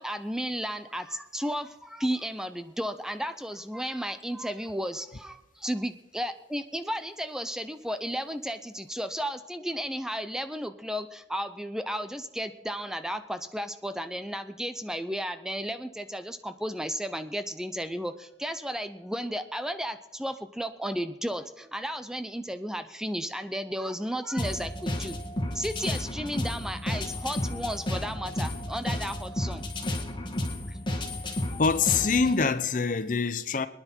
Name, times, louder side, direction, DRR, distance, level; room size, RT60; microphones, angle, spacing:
voice 1, 0.0-25.2 25.5-29.6 30.7-30.8, equal, 5° right, 0.5 m, -33 dB
sound 1, 24.4-32.4, left 1 dB, 25° left, 2.0 m, -32 dB
voice 2, 31.6-33.7, left 5 dB, 45° left, 0.7 m, -25 dB
24.0 x 10.0 x 4.4 m
head